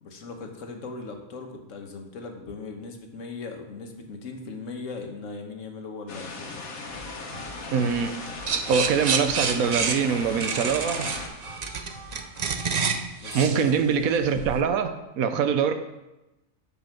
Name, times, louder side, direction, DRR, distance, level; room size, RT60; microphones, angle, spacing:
voice 1, 0.0-6.5 13.2-13.8, left 4 dB, 65° left, 3 dB, 1.3 m, -38 dB
sound 1, 6.1-11.3, left 3 dB, 80° left, 1.6 m, -38 dB
sound 2, 6.9-12.9, equal, 20° right, 1.9 m, -44 dB
voice 2, 7.7-8.1 8.7-11.1 13.3-15.7, right 6 dB, 85° right, 8 dB, 1.2 m, -24 dB
sound 3, 8.5-14.6, right 5 dB, 60° right, 0.4 m, -29 dB
6.9 x 5.5 x 5.9 m, 0.97 s
omnidirectional pair, 1.5 m